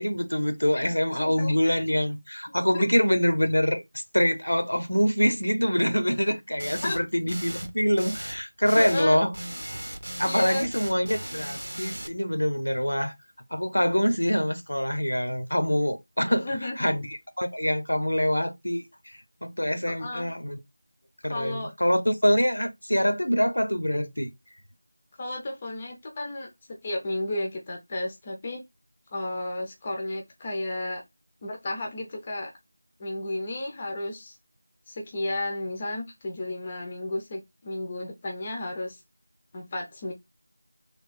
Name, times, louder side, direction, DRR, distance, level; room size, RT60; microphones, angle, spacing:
voice 1, 0.0-3.8 4.1-9.3 10.2-13.1 13.5-16.4 16.8-20.6 21.2-24.3, equal, 85° left, 0.9 m, -25 dB
voice 2, 0.7-1.8 2.7-2.8 6.8-7.0 8.7-9.2 10.3-10.7 16.3-16.9 19.9-20.3 21.2-21.7 25.2-28.6 29.1-31.0 31.4-32.5 33.0-34.4 34.9-39.0 39.5-40.1, left 1 dB, 20° left, 0.6 m, -33 dB
sound 1, 6.6-7.0 7.3-7.7 8.0-8.4 8.6-9.1 9.3-12.1, right 1 dB, 75° right, 0.7 m, -37 dB
3.5 x 2.4 x 4.0 m
figure-of-eight pair, 170°, 0 cm